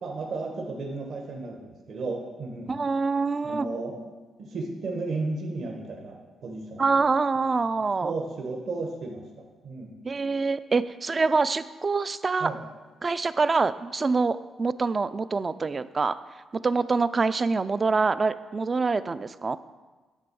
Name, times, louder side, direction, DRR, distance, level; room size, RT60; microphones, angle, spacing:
voice 1, 0.0-2.8 3.4-4.0 4.4-6.9 7.7-9.9 12.4-12.6, right 3 dB, 60° right, 0 dB, 1.2 m, -34 dB
voice 2, 2.7-3.7 6.8-8.1 10.0-12.5 13.0-16.2 16.6-19.6, right 4 dB, 30° right, 14 dB, 0.3 m, -25 dB
10.0 x 3.8 x 6.9 m, 1.3 s
cardioid pair, 120°, 0 cm